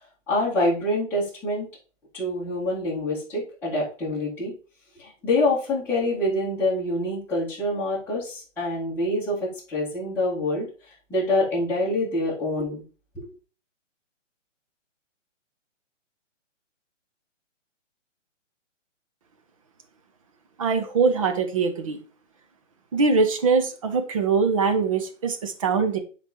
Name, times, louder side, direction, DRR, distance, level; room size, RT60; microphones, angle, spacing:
voice 1, 0.3-1.7 2.1-4.5 5.0-10.7 11.1-12.8 13.1-13.3, left 1 dB, 5° left, -11 dB, 2.3 m, -26 dB
voice 2, 20.6-22.0 22.9-26.0, right 4 dB, 25° right, 7 dB, 0.8 m, -22 dB
9.8 x 4.1 x 3.1 m, 0.37 s
hypercardioid pair, 165°, 37 cm